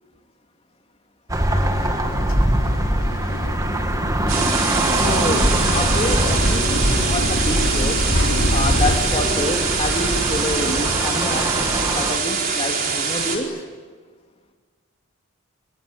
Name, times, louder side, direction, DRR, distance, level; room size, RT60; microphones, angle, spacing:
sound 1, 1.3-12.2, right 1 dB, 15° right, 1.7 m, -23 dB
sound 2, 1.5-9.0, left 1 dB, 65° left, 3.3 m, -26 dB
sound 3, 4.3-13.4, right 5 dB, 40° right, 4.5 m, -24 dB
voice 1, 4.9-8.0 8.5-13.5, left 1 dB, 25° left, 3 dB, 3.0 m, -27 dB
28.0 x 20.5 x 9.7 m, 1.5 s
head